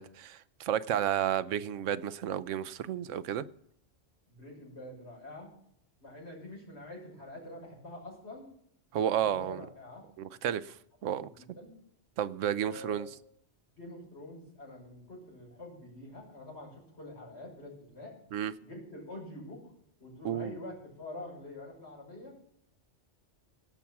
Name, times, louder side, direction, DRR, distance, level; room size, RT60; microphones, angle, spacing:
voice 1, 0.0-3.4 8.9-9.6 10.2-10.8 11.0-11.3 12.2-13.1 18.3-18.5 20.2-20.6, right 10 dB, 80° right, 15 dB, 1.0 m, -32 dB
voice 2, 4.3-5.5 6.0-8.5 9.1-10.0 11.1-11.7 12.7-13.1 13.7-18.1 18.6-19.6 20.0-22.3, left 1 dB, 55° left, -4 dB, 6.1 m, -46 dB
17.5 x 5.9 x 7.2 m, 0.70 s
omnidirectional pair, 1.3 m